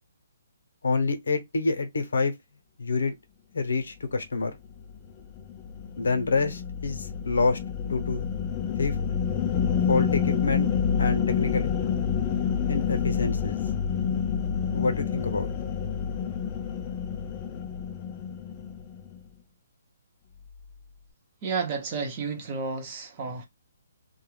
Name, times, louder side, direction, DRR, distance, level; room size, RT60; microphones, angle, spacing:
voice 1, 0.8-2.3 2.8-3.1 3.5-4.6 6.0-7.6 7.9-8.3 8.8-9.0 9.9-10.7 11.0-11.7 12.7-13.6 14.7-15.5, left 4 dB, 85° left, 0.8 m, -27 dB
sound 1, 4.7-19.2, left 7 dB, 25° left, 0.3 m, -28 dB
voice 2, 21.4-23.5, right 5 dB, 30° right, 0.8 m, -31 dB
2.3 x 2.2 x 3.2 m
hypercardioid pair, 160°, 0 cm